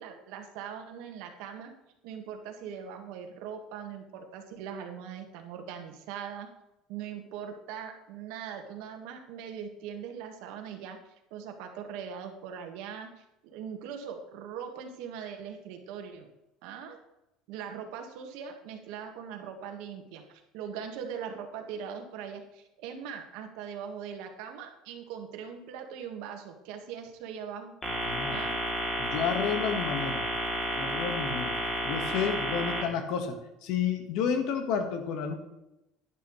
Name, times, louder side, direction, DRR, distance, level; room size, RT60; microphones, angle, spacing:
voice 1, 0.0-1.7 2.0-6.5 6.9-11.0 11.3-16.3 16.6-17.0 17.5-27.7 28.3-28.6, right 7 dB, 75° right, 4 dB, 1.7 m, -41 dB
sound 1, 27.8-32.8, equal, 15° left, 3.0 m, -31 dB
voice 2, 28.1-28.4 29.0-30.2 30.8-31.6 31.8-35.3, left 7 dB, 60° left, 6 dB, 1.6 m, -31 dB
11.0 x 10.5 x 3.3 m, 0.91 s
cardioid pair, 155°, 0 cm